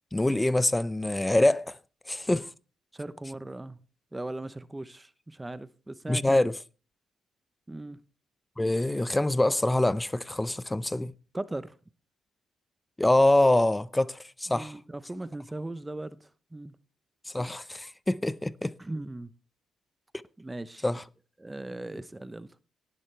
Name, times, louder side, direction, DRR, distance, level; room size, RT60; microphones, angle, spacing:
voice 1, 0.1-1.8 2.1-2.5 6.1-6.5 8.6-11.1 13.0-14.7 17.3-18.7 20.8-21.0, left 1 dB, 10° left, 0.6 m, -25 dB
voice 2, 2.9-3.8 4.1-6.5 7.7-8.0 11.3-11.8 14.5-16.7 18.8-19.3 20.4-20.9 21.4-22.6, right 2 dB, 15° right, 0.8 m, -38 dB
18.0 x 11.0 x 3.4 m
cardioid pair, 90°, 0 cm